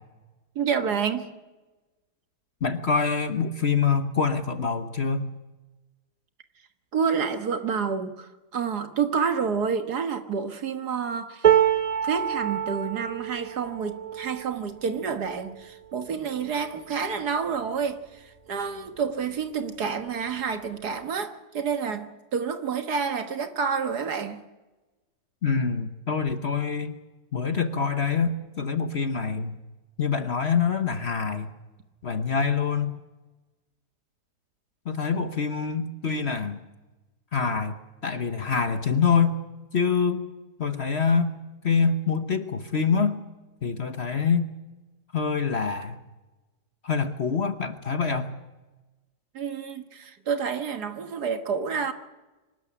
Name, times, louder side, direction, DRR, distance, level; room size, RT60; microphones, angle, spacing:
voice 1, 0.6-1.3 6.9-11.5 12.0-18.2 18.5-24.4 49.3-51.9, right 6 dB, 65° right, 2.0 m, -29 dB
voice 2, 2.6-5.3 25.4-26.9 27.3-29.6 30.0-31.5 32.0-33.0 34.8-36.6 37.3-37.8 38.0-39.4 39.7-40.2 40.6-41.4 41.6-43.2 43.6-44.5 45.1-46.0 46.8-48.4, left 5 dB, 45° left, 1.1 m, -25 dB
sound 1, 11.4-17.6 18.2-18.4 18.7-19.4 20.4-20.5, right 10 dB, 45° right, 0.5 m, -28 dB
24.5 x 13.0 x 9.8 m
omnidirectional pair, 1.9 m